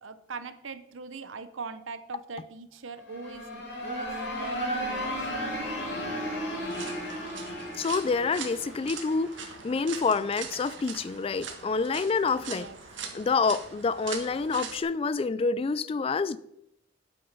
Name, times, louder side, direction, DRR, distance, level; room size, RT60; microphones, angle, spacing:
voice 1, 0.0-5.3 12.3-12.8, right 4 dB, 90° right, 0.8 m, -41 dB
sound 1, 3.0-9.8, equal, 60° left, 3.1 m, -34 dB
sound 2, 6.6-14.8, right 6 dB, 70° right, 1.5 m, -42 dB
voice 2, 7.7-9.4 9.6-12.7 13.1-16.4, left 4 dB, 30° left, 0.3 m, -27 dB
8.8 x 7.0 x 5.4 m
head